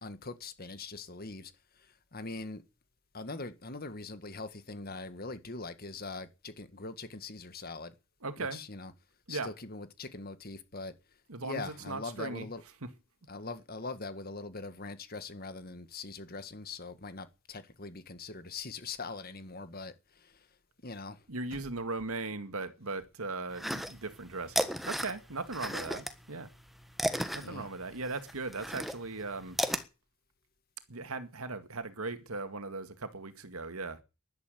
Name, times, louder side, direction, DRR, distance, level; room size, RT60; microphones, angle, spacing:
voice 1, 0.0-2.6 3.1-7.9 8.4-8.9 9.3-10.9 11.4-12.6 13.3-20.5 20.8-21.2 21.5-21.6 27.4-27.7, left 3 dB, 45° left, 1.8 m, -42 dB
voice 2, 8.2-8.6 9.3-9.5 11.3-12.9 21.3-26.5 27.3-29.6 30.9-34.0, right 3 dB, 90° right, 2.0 m, -38 dB
sound 1, 23.6-24.2 24.5-26.1 26.5-29.8, equal, ahead, 1.4 m, -33 dB
11.5 x 11.5 x 9.1 m
head